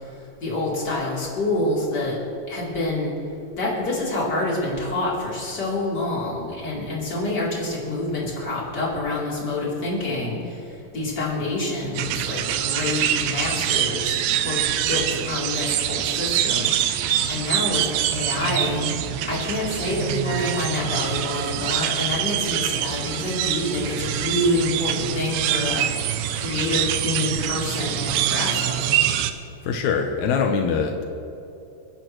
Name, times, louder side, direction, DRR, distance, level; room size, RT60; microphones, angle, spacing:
voice 1, 0.4-2.2 2.5-3.1 3.6-10.6 10.9-14.2 14.4-14.6 14.9-16.9 17.3-17.9 18.1-18.8 19.3-25.9 26.3-29.0, left 2 dB, 25° left, -5 dB, 3.6 m, -27 dB
sound 1, 12.0-29.3, right 11 dB, 80° right, 2.7 m, -25 dB
voice 2, 29.6-31.0, left 6 dB, 80° left, 3 dB, 1.6 m, -23 dB
29.5 x 11.0 x 3.1 m, 2.8 s
omnidirectional pair, 4.6 m